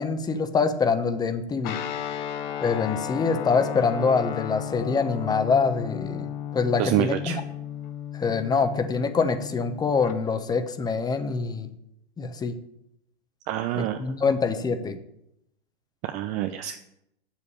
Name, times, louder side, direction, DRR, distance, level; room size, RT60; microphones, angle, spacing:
voice 1, 0.0-1.8 2.6-6.3 6.5-7.1 8.1-11.7 12.2-12.5 13.8-15.0, left 5 dB, 10° left, 10 dB, 0.9 m, -25 dB
Guitar, 1.6-10.2, left 10 dB, 45° left, 1.1 m, -34 dB
voice 2, 6.8-7.4 13.5-14.3 16.0-16.8, right 13 dB, 25° right, 9 dB, 0.4 m, -27 dB
8.3 x 7.2 x 8.6 m, 0.82 s
figure-of-eight pair, 110°, 32 cm